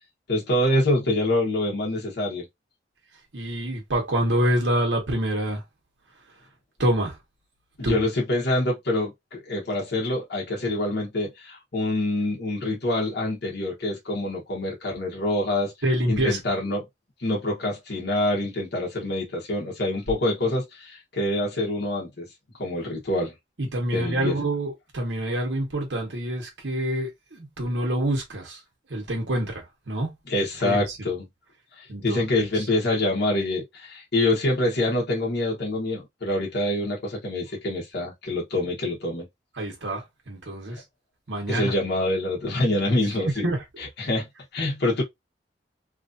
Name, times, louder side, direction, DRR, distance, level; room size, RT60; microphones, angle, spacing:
voice 1, 0.3-2.5 7.8-15.7 16.1-16.8 17.2-22.3 22.6-23.3 23.9-24.3 30.3-31.2 31.8-39.3 41.5-43.4 44.0-44.3 44.5-45.0, left 1 dB, 65° left, 1.1 m, -26 dB
voice 2, 3.3-5.6 6.8-7.2 7.8-8.0 15.8-16.4 23.6-28.6 28.9-30.1 30.6-31.0 31.9-32.6 39.5-40.8 41.3-41.7 43.4-43.6, right 1 dB, 80° right, 1.2 m, -26 dB
3.1 x 2.6 x 2.5 m
head